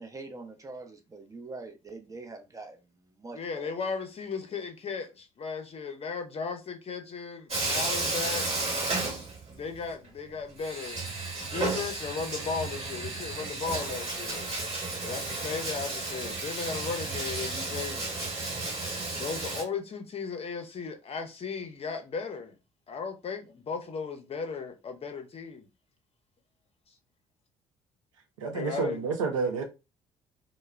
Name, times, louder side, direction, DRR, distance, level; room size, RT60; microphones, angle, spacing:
voice 1, 0.0-2.8 3.2-3.7, right 3 dB, 20° right, 0.7 m, -43 dB
voice 2, 3.3-8.5 9.5-11.1 11.4-14.5 15.0-18.1 19.1-22.5 22.9-25.7 26.9-27.0 28.5-29.0, left 5 dB, 35° left, 0.7 m, -36 dB
Bathtub (filling or washing), 7.5-9.8 10.0-10.1 10.6-19.6, right 2 dB, 40° right, 1.4 m, -33 dB
voice 3, 28.4-29.6, right 5 dB, 80° right, 0.6 m, -29 dB
2.2 x 2.1 x 3.3 m
figure-of-eight pair, 45°, 16 cm